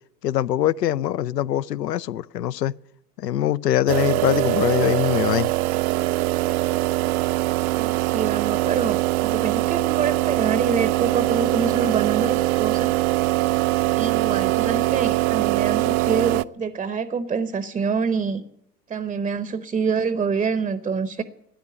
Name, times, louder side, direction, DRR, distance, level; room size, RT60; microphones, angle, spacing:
voice 1, 0.2-2.7 3.2-5.5, left 12 dB, 85° left, 0.6 m, -23 dB
sound 1, 3.9-16.4, right 18 dB, 60° right, 0.6 m, -22 dB
voice 2, 7.8-12.9 14.0-18.4 18.9-21.2, right 5 dB, 15° right, 0.7 m, -26 dB
13.0 x 10.0 x 9.9 m
hypercardioid pair, 90°, 48 cm